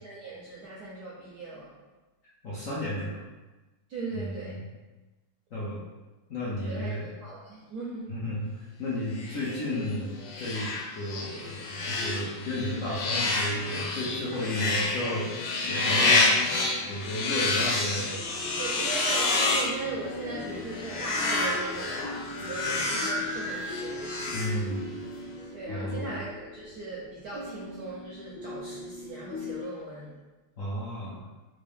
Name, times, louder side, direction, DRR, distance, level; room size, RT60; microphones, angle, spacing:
voice 1, 0.0-1.7 3.9-4.6 6.6-8.1 14.4-14.5 17.5-18.2 18.6-22.1 22.4-24.0 25.5-30.1, right 3 dB, 75° right, -5 dB, 0.9 m, -38 dB
voice 2, 2.4-3.2 4.1-4.7 5.5-5.8 6.3-7.1 8.1-8.5 8.8-15.3 15.6-16.3 16.5-18.2 24.3-24.9 25.7-26.2 30.6-31.2, left 1 dB, 70° left, -8 dB, 0.7 m, -33 dB
sound 1, 9.1-25.1, left 3 dB, 85° left, 1.5 m, -29 dB
sound 2, 18.2-29.6, left 2 dB, 55° left, 1.2 m, -41 dB
3.5 x 2.6 x 3.4 m, 1.1 s
omnidirectional pair, 2.3 m